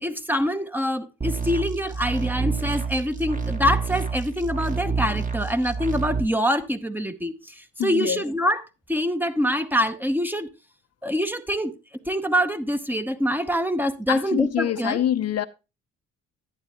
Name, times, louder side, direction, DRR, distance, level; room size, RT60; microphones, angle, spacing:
voice 1, 0.0-8.6 8.9-10.5 11.0-11.7 12.1-15.0, equal, 5° right, 0.8 m, -25 dB
sound 1, 1.2-6.2, right 4 dB, 25° right, 1.4 m, -28 dB
voice 2, 7.8-8.2 14.1-15.5, left 11 dB, 50° left, 0.6 m, -25 dB
11.5 x 8.8 x 3.0 m
supercardioid pair, 70°, 31 cm